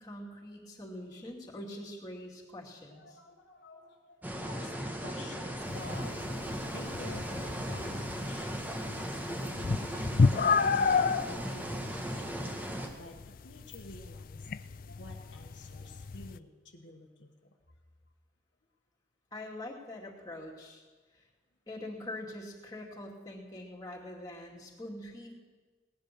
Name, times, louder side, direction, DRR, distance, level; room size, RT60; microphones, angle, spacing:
voice 1, 0.0-3.2 19.3-20.8 21.1-21.2 21.7-25.3, left 1 dB, 20° left, -2 dB, 2.5 m, -44 dB
voice 2, 2.9-8.5 8.8-9.6 10.3-14.5 14.8-17.3 20.5-20.6, left 2 dB, 70° left, 2 dB, 1.3 m, -50 dB
sound 1, 4.2-12.9, equal, 10° right, 1.3 m, -37 dB
sound 2, 5.7-16.4, left 5 dB, 45° left, 0.4 m, -32 dB
18.0 x 10.5 x 6.7 m, 1.4 s
head